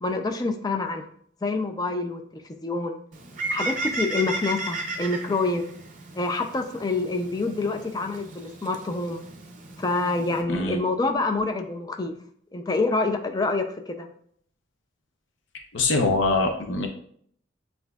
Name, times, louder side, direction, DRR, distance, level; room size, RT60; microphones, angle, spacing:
voice 1, 0.0-1.0 1.4-3.0 3.5-5.6 6.1-9.2 9.8-12.1 12.5-14.1, left 3 dB, 20° left, 5 dB, 0.4 m, -27 dB
Bird, 3.1-10.4, right 2 dB, 40° right, 0.6 m, -34 dB
voice 2, 15.7-16.9, left 3 dB, 70° left, 3 dB, 0.6 m, -23 dB
7.8 x 2.6 x 2.3 m, 0.64 s
head